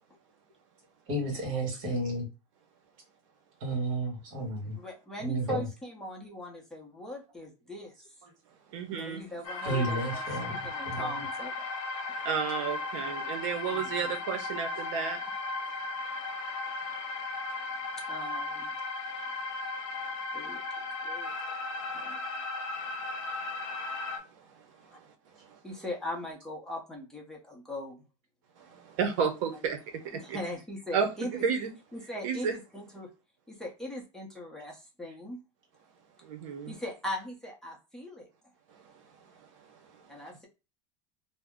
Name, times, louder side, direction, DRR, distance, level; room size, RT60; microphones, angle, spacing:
voice 1, 1.1-2.3 3.6-4.8 5.2-5.7 9.6-11.1, right 1 dB, 50° right, 1.5 m, -32 dB
voice 2, 4.8-7.9 8.9-10.2 10.5-11.7 13.7-14.1 18.1-18.8 20.3-20.6 21.0-21.3 21.9-22.3 25.6-28.0 30.1-31.4 31.9-33.1 33.5-35.4 36.7-38.3 40.1-40.5, left 1 dB, 5° left, 0.7 m, -40 dB
voice 3, 8.7-9.2 12.2-15.2 23.4-23.6 24.1-25.1 25.3-25.6 28.6-30.4 30.9-31.7 32.2-32.6 36.2-36.7 38.7-40.2, right 6 dB, 70° right, 0.7 m, -33 dB
sound 1, 9.4-24.2, left 3 dB, 70° left, 0.8 m, -36 dB
2.7 x 2.0 x 3.5 m
supercardioid pair, 155°, 17 cm